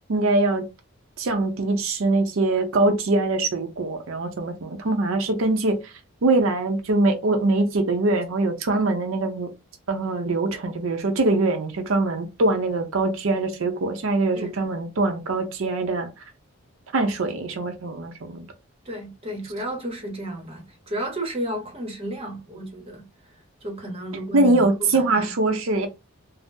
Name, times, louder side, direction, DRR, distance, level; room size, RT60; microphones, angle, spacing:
voice 1, 0.1-0.6 1.2-5.9 6.2-9.5 9.9-16.1 16.9-18.5 24.3-25.9, right 2 dB, 70° right, 0.6 m, -23 dB
voice 2, 18.9-23.1 23.6-25.3, right 1 dB, 25° right, 0.8 m, -32 dB
3.5 x 2.0 x 2.6 m
head